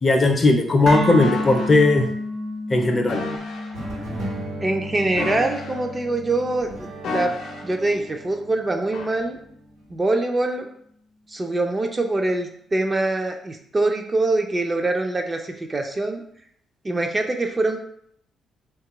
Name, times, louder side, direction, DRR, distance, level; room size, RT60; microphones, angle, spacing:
voice 1, 0.0-2.1 2.7-3.2, left 2 dB, 35° left, 4 dB, 0.5 m, -17 dB
sound 1, 0.9-9.0, left 1 dB, 55° right, 0.9 m, -33 dB
sound 2, 1.2-1.8 3.1-3.7 5.1-6.0 7.0-7.8 8.9-9.2, left 3 dB, 80° left, 0.6 m, -32 dB
sound 3, 3.7-9.9, right 1 dB, 90° right, 1.0 m, -37 dB
voice 2, 4.6-7.3 7.6-9.4 9.9-10.7 11.3-16.2 16.8-17.8, right 2 dB, 25° right, 4 dB, 0.4 m, -24 dB
3.1 x 2.3 x 2.9 m, 0.67 s
cardioid pair, 90°, 0 cm